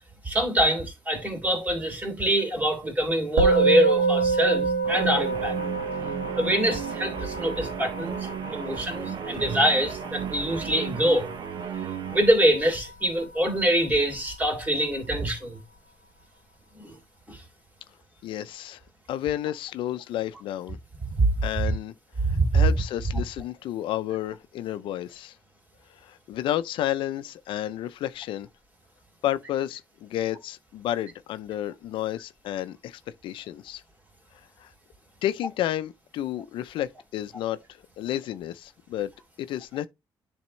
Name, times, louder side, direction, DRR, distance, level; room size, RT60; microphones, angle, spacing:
voice 1, 0.2-5.6 6.4-11.3 12.1-15.6 16.7-17.0 17.3-17.4 21.2-21.3 21.6-21.7 22.2-22.6, right 1 dB, 20° right, 3.1 m, -24 dB
Musical instrument, 3.4-12.9, right 4 dB, 80° right, 2.0 m, -27 dB
Guitar, 4.8-12.3, right 8 dB, 55° right, 0.8 m, -35 dB
voice 2, 18.2-18.8 19.1-20.8 21.4-21.9 22.3-25.3 26.0-28.5 29.2-33.8 34.6-34.7 35.2-37.6 38.0-39.1 39.4-39.9, left 12 dB, 85° left, 0.5 m, -31 dB
10.5 x 3.5 x 3.2 m
cardioid pair, 115°, 8 cm